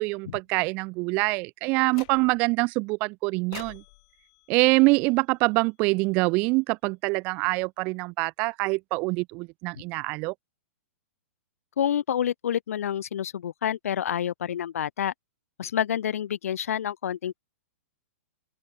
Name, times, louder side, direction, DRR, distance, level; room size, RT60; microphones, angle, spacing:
voice 1, 0.0-3.8 4.5-10.3, right 26 dB, 20° right, 0.4 m, -25 dB
sound 1, 1.9-2.6 3.5-5.8, left 26 dB, 30° left, 1.5 m, -48 dB
voice 2, 11.8-15.1 15.6-17.4, left 9 dB, 85° left, 0.6 m, -28 dB
open air
hypercardioid pair, 175°, 8 cm